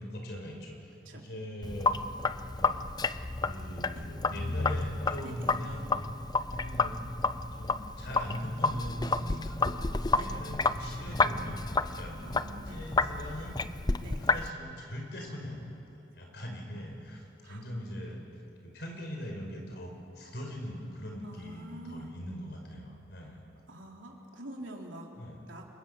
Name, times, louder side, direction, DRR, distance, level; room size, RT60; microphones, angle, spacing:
voice 1, 0.0-1.9 2.5-2.8 3.4-5.9 6.5-7.0 7.5-9.8 10.2-12.2 12.7-13.6 14.3-15.8 16.1-18.3 18.6-23.4 25.2-25.4, equal, 60° left, 1 dB, 5.7 m, -40 dB
Sink (filling or washing), 1.6-14.5, left 3 dB, 20° left, 0.5 m, -31 dB
voice 2, 5.2-5.6 10.1-10.5 12.2-12.8 14.0-14.3 17.4-17.6 21.2-22.1 23.7-25.1 25.5-25.7, right 1 dB, 85° right, 0 dB, 3.9 m, -46 dB
29.0 x 23.5 x 7.0 m, 2.7 s
head